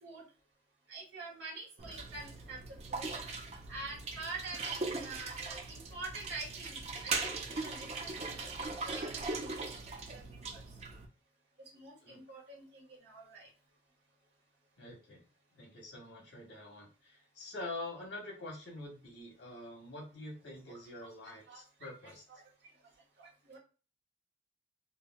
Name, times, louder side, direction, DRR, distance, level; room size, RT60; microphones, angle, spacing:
voice 1, 0.9-2.6 2.9-3.1 3.7-6.8 7.0-7.3 7.6-9.6 9.9-10.6 11.7-13.5 20.7-22.4 23.2-23.6, right 3 dB, 65° right, -2 dB, 1.2 m, -47 dB
sound 1, 1.8-11.1, right 3 dB, 35° right, 0.5 m, -40 dB
voice 2, 14.8-15.2 15.5-22.2, left 2 dB, 75° left, -1 dB, 1.2 m, -46 dB
3.2 x 2.3 x 2.2 m, 0.35 s
head